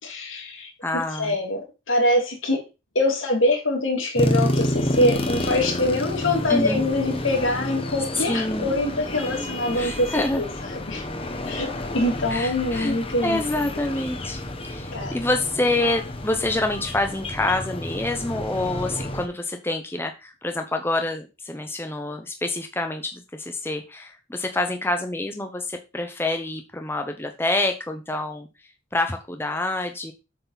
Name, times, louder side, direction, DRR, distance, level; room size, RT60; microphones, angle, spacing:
voice 1, 0.0-0.7 1.2-1.6 1.9-2.6 2.9-10.5 10.7-11.0 11.5-11.7 11.9-13.4 14.9-15.1, left 1 dB, 80° left, 2.8 m, -24 dB
voice 2, 0.8-1.4 6.5-6.8 8.1-8.7 9.7-10.4 12.3-13.0 13.2-28.5 28.9-30.1, left 2 dB, 10° left, 0.8 m, -27 dB
sound 1, 4.1-19.2, left 1 dB, 30° left, 1.2 m, -29 dB
8.0 x 6.7 x 4.1 m
head